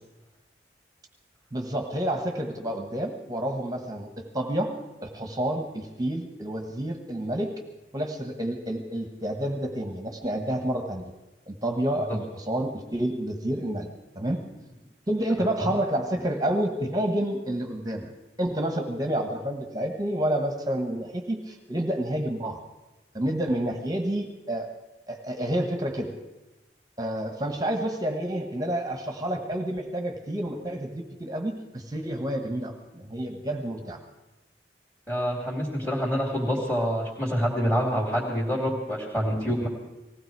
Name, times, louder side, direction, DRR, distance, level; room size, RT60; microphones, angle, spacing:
voice 1, 1.5-4.7 5.0-7.5 7.9-11.0 11.5-13.9 14.1-14.4 15.1-18.1 18.4-22.6 23.1-24.7 25.1-26.1 27.0-34.0, right 1 dB, 20° right, 5 dB, 1.3 m, -29 dB
voice 2, 15.4-15.7 35.1-39.7, equal, 10° left, -6 dB, 2.7 m, -27 dB
19.0 x 16.0 x 4.7 m, 1.1 s
head